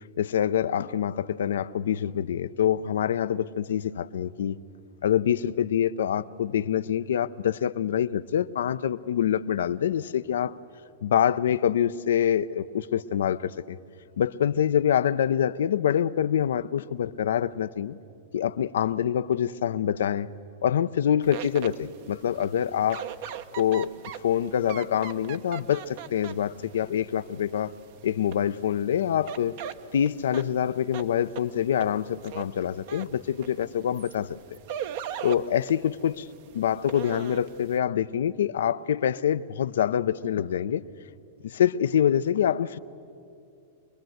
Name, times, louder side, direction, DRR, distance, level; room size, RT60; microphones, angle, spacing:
voice 1, 0.2-4.6 5.0-10.5 11.0-13.8 14.2-18.0 18.3-20.3 20.6-23.0 23.5-23.9 24.2-27.7 28.0-29.5 29.9-34.6 35.2-36.3 36.6-40.8 41.4-42.8, left 9 dB, 75° left, 0.6 m, -25 dB
sound 1, 21.2-37.8, right 9 dB, 60° right, 1.0 m, -41 dB
25.5 x 21.5 x 7.9 m
hypercardioid pair, 110°, 0 cm